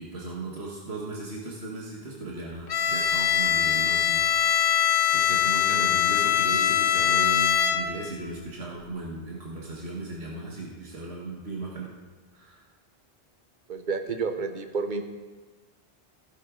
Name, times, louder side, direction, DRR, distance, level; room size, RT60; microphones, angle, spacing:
voice 1, 0.0-4.2 5.1-11.9 12.3-12.6, right 2 dB, 85° right, -3 dB, 1.9 m, -36 dB
Bowed string instrument, 2.7-8.1, left 10 dB, 65° left, 0.9 m, -23 dB
voice 2, 13.7-15.0, right 4 dB, 50° right, 7 dB, 1.1 m, -30 dB
16.0 x 11.0 x 3.8 m, 1.3 s
omnidirectional pair, 1.0 m